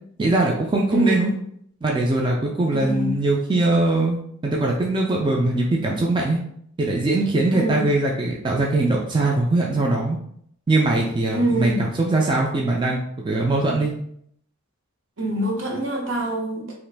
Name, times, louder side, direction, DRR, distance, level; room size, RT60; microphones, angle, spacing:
voice 1, 0.2-1.3 1.8-6.4 6.8-10.2 10.7-14.0, right 2 dB, 25° right, -1 dB, 0.3 m, -21 dB
voice 2, 0.9-1.3 2.7-3.2 7.5-7.9 11.3-11.9 15.2-16.7, right 1 dB, 65° right, 0 dB, 0.8 m, -24 dB
2.9 x 2.4 x 3.3 m, 0.68 s
head